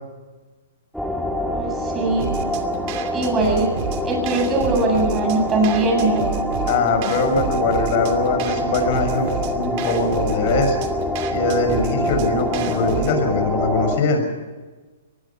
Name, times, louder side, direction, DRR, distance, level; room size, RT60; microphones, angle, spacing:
sound 1, 0.9-14.0, equal, ahead, 1.9 m, -25 dB
voice 1, 1.5-2.4 3.1-3.8 4.0-6.4, right 2 dB, 20° right, 1 dB, 7.9 m, -21 dB
sound 2, 2.2-13.2, right 10 dB, 45° right, 2.7 m, -31 dB
voice 2, 6.7-10.8 11.3-14.2, left 4 dB, 50° left, 6 dB, 6.5 m, -21 dB
23.5 x 20.0 x 5.8 m, 1.3 s
hypercardioid pair, 140°, 0 cm